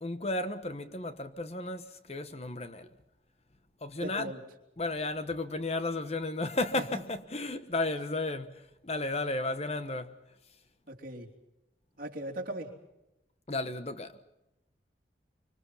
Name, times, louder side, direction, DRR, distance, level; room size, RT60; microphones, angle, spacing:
voice 1, 0.0-2.9 3.8-4.3 4.8-10.2 13.5-14.2, left 2 dB, 35° left, 1.2 m, -33 dB
voice 2, 4.0-4.4 6.8-7.0 10.9-11.3 12.0-12.7, right 1 dB, 50° right, 3.3 m, -39 dB
25.5 x 25.5 x 5.7 m
head